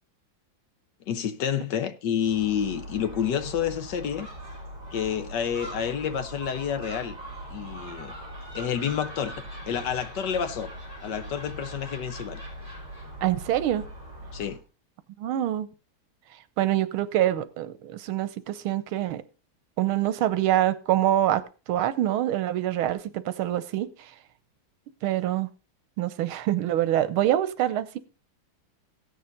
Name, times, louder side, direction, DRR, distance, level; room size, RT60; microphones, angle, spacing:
voice 1, 1.1-4.3 4.9-7.2 7.5-8.1 8.5-9.3 9.7-10.7 11.0-12.4 14.3-14.6, left 8 dB, 65° left, 1.3 m, -29 dB
Gull seagull, 2.2-14.6, equal, 10° right, 4.9 m, -41 dB
voice 2, 13.2-13.8 15.2-15.7 16.6-19.2 19.8-21.4 21.7-24.1 25.0-25.5 26.0-28.0, right 12 dB, 90° right, 1.6 m, -25 dB
16.5 x 6.7 x 3.9 m
omnidirectional pair, 2.3 m